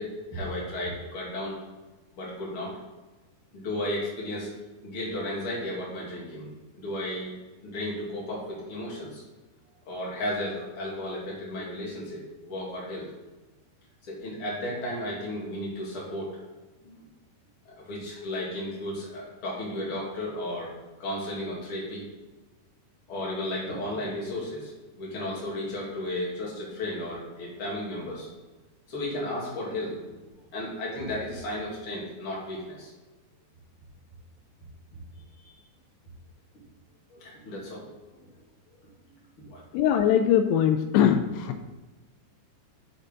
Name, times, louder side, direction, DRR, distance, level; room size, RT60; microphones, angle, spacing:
voice 1, 0.0-1.6 2.1-2.8 3.5-4.5 4.8-6.5 6.8-7.3 7.6-9.2 9.9-13.1 14.0-16.4 16.8-17.0 17.7-22.1 23.1-24.7 25.0-28.3 28.9-30.1 30.5-32.9 35.5-35.6 37.1-37.9 39.4-39.6, left 1 dB, 35° left, -5 dB, 3.0 m, -34 dB
voice 2, 39.7-41.6, left 9 dB, 85° left, 7 dB, 2.8 m, -22 dB
8.2 x 6.6 x 3.9 m, 1.2 s
omnidirectional pair, 4.8 m